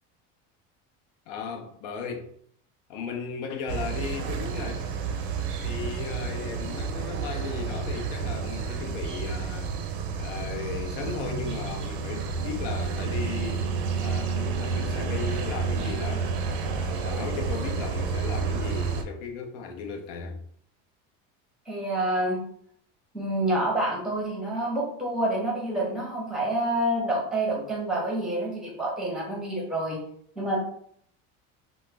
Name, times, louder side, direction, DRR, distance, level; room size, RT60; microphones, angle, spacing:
voice 1, 1.3-2.3 2.9-4.9 5.6-9.8 10.2-13.7 14.0-16.3 16.7-20.4, left 5 dB, 75° left, 0.7 m, -36 dB
sound 1, 3.7-19.0, right 5 dB, 85° right, 0.6 m, -30 dB
voice 2, 21.7-22.4 23.1-30.0 30.4-30.6, right 1 dB, ahead, 0.7 m, -28 dB
3.0 x 2.0 x 3.3 m
cardioid pair, 175°, 30 cm